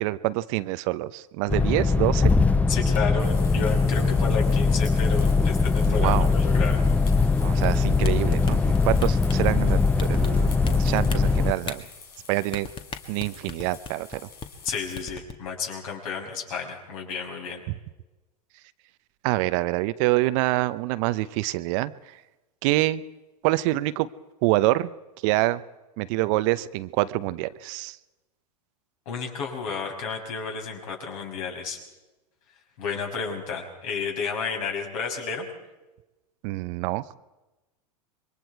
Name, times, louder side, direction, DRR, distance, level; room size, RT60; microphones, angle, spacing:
voice 1, 0.0-2.3 5.9-6.3 7.4-11.8 12.3-12.7 13.1-14.2 17.7-17.8 19.2-22.2 22.6-23.0 23.4-24.1 24.4-24.9 25.2-25.6 26.0-28.0 36.4-37.0, right 18 dB, 50° right, 14 dB, 0.8 m, -26 dB
sound 1, 1.5-11.5, left 4 dB, 5° left, 0.7 m, -21 dB
voice 2, 2.7-6.8 14.6-17.6 29.1-31.8 32.8-35.5, left 5 dB, 60° left, 1 dB, 6.3 m, -32 dB
sound 2, 3.2-15.0, left 5 dB, 80° left, 5.0 m, -47 dB
sound 3, 7.6-9.5 10.0-10.7 11.0-11.7 12.5-14.2 14.4-14.7 15.0-15.3, left 5 dB, 25° left, 1.8 m, -34 dB
27.0 x 23.0 x 4.7 m, 1.1 s
hypercardioid pair, 100°, 20 cm